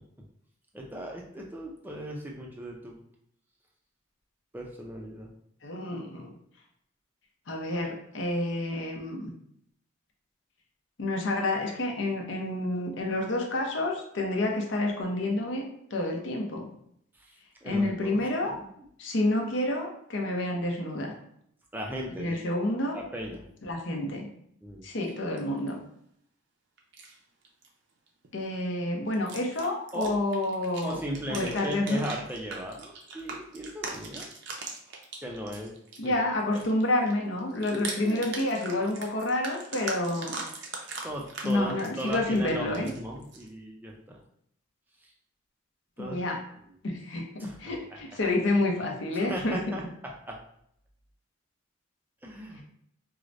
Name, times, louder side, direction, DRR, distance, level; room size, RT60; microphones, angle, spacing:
voice 1, 0.7-3.0 4.5-5.3 17.2-18.7 21.7-22.4 22.9-23.4 24.6-24.9 29.9-30.2 30.8-34.2 35.2-35.7 36.0-36.2 36.5-36.6 38.0-38.4 41.0-44.2 46.0-46.2 47.4-47.5 49.1-49.8 50.3-50.4 52.2-52.6, equal, 10° right, -1 dB, 0.5 m, -37 dB
voice 2, 5.6-6.4 7.5-9.3 11.0-16.7 17.6-18.5 19.0-21.1 22.2-23.0 23.6-24.3 24.8-25.8 28.3-31.0 31.3-32.0 36.0-40.4 41.4-42.9 46.0-46.4 46.8-49.7, left 1 dB, 60° left, 1 dB, 0.7 m, -29 dB
sound 1, 25.1-25.7 26.8-27.2 27.4-27.7 28.1-28.3 29.1-36.1 36.4-43.5, right 3 dB, 55° right, 0.6 m, -40 dB
4.7 x 2.1 x 2.5 m, 0.71 s
head